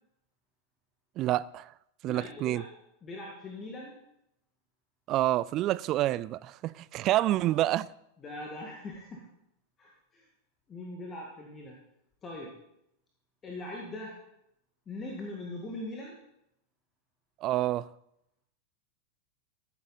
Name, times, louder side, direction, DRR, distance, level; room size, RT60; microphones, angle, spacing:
voice 1, 1.2-1.7 2.0-2.6 5.1-7.9 17.4-17.9, right 15 dB, 35° right, 0.3 m, -28 dB
voice 2, 2.1-2.7 3.0-3.9 7.3-7.4 8.2-9.3 9.8-10.3 10.7-11.8 12.2-12.5 13.4-14.2 14.9-16.2, left 2 dB, 20° left, 1.8 m, -41 dB
14.5 x 8.3 x 4.2 m
figure-of-eight pair, 90°, 0 cm